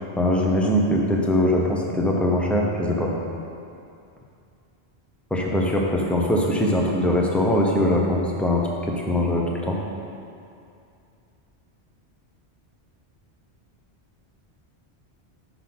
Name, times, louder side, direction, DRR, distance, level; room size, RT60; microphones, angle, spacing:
voice 1, 0.2-3.1 5.3-9.8, left 1 dB, ahead, -2 dB, 0.6 m, -22 dB
5.8 x 5.6 x 6.1 m, 2.6 s
omnidirectional pair, 1.1 m